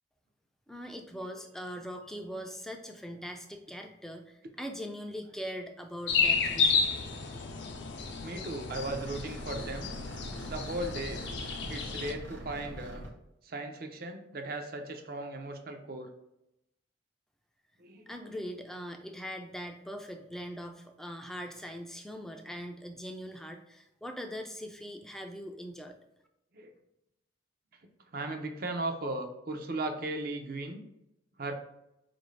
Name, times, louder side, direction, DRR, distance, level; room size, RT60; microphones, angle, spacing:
voice 1, 0.7-6.8 18.1-26.0, equal, ahead, 4 dB, 0.3 m, -41 dB
sound 1, 6.1-12.1, left 5 dB, 70° left, 0.5 m, -31 dB
voice 2, 8.2-9.9 10.5-11.2 11.7-13.0 13.4-16.1 17.8-18.5 26.5-26.7 28.1-30.8 31.4-31.5, right 2 dB, 55° right, 5 dB, 0.5 m, -37 dB
sound 2, 8.7-13.1, right 1 dB, 85° right, 0.8 m, -43 dB
4.5 x 2.6 x 3.2 m, 0.86 s
head